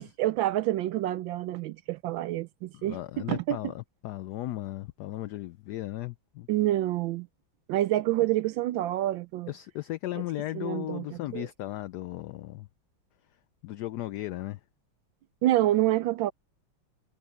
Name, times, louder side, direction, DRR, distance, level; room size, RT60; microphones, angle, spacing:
voice 1, 0.0-3.6 6.5-7.3 7.7-9.5 10.5-11.5 15.4-16.3, right 14 dB, 75° right, 1.3 m, -27 dB
voice 2, 2.7-6.5 9.5-12.7 13.6-14.6, left 15 dB, 75° left, 1.0 m, -36 dB
omnidirectional pair, 2.2 m